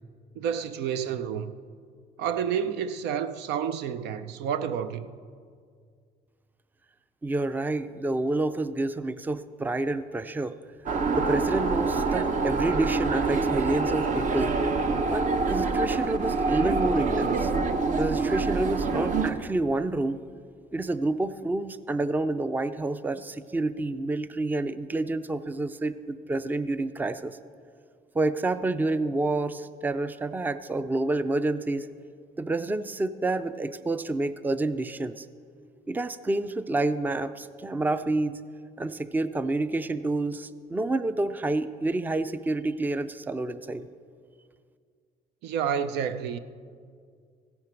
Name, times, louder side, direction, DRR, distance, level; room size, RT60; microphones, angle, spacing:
voice 1, 0.3-1.5 2.2-5.1 45.4-46.4, right 8 dB, 85° right, 0.6 m, -29 dB
voice 2, 7.2-10.6 11.2-14.6 15.1-17.5 18.0-20.3 20.7-27.4 28.1-31.9 32.4-35.3 35.9-38.4 38.8-43.9, right 2 dB, 10° right, 0.4 m, -28 dB
sound 1, 10.9-19.3, right 4 dB, 50° right, 0.8 m, -26 dB
15.5 x 11.0 x 4.5 m
cardioid pair, 110°, 17 cm